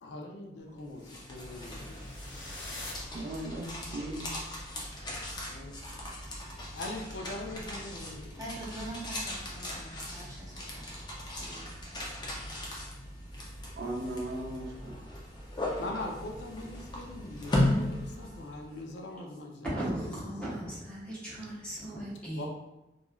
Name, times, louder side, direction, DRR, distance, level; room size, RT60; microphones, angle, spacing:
voice 1, 0.0-2.1 5.5-5.8 6.7-8.4 15.4-20.3 22.3-22.5, left 2 dB, 80° left, 1 dB, 0.5 m, -42 dB
sound 1, 0.8-18.8, left 1 dB, 25° left, 0.5 m, -37 dB
sound 2, 1.8-4.0, left 2 dB, 60° left, 1.1 m, -45 dB
voice 2, 3.1-4.3 13.8-15.1, right 1 dB, 80° right, 0 dB, 0.5 m, -37 dB
voice 3, 8.4-10.9 11.4-11.7 12.4-12.5, right 1 dB, 20° right, -5 dB, 0.6 m, -44 dB
voice 4, 19.6-22.5, right 1 dB, 5° left, -9 dB, 1.0 m, -37 dB
3.0 x 2.3 x 2.3 m, 0.98 s
head